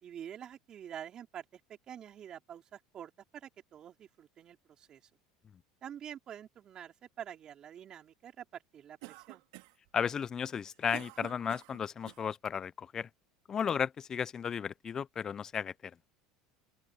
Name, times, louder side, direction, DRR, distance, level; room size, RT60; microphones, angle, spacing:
voice 1, 0.0-5.0 5.8-9.4, right 9 dB, 40° right, 4.1 m, -47 dB
Cough, 9.0-9.9 10.5-12.3, right 25 dB, 75° right, 3.1 m, -49 dB
voice 2, 9.9-13.1 13.5-15.7, left 7 dB, 30° left, 0.5 m, -34 dB
open air
supercardioid pair, 115°, 2 cm